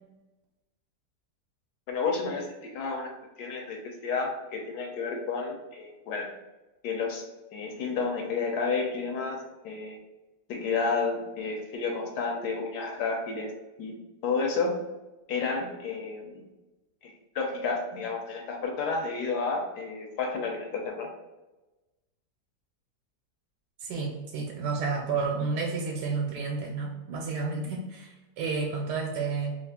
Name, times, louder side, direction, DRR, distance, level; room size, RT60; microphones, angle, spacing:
voice 1, 1.9-3.1 3.4-6.3 6.8-7.2 7.5-10.0 10.5-13.5 13.8-14.0 14.2-14.8 15.3-16.4 17.0-21.1, left 4 dB, 75° left, 2 dB, 1.2 m, -31 dB
voice 2, 23.8-29.6, right 4 dB, 90° right, 0 dB, 1.2 m, -31 dB
3.0 x 2.4 x 3.5 m, 1.1 s
omnidirectional pair, 1.8 m